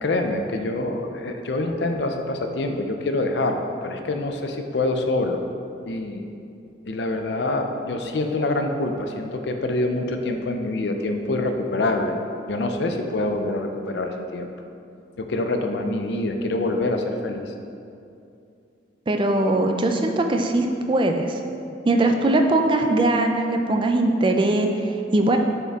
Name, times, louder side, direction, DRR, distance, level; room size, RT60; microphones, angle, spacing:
voice 1, 0.0-5.4 5.8-6.3 6.9-12.2 12.5-14.5 15.2-17.5, left 2 dB, 65° left, 5 dB, 0.5 m, -25 dB
voice 2, 19.1-21.4 21.8-25.4, right 2 dB, 30° right, 4 dB, 0.3 m, -21 dB
6.8 x 4.4 x 3.6 m, 2.6 s
head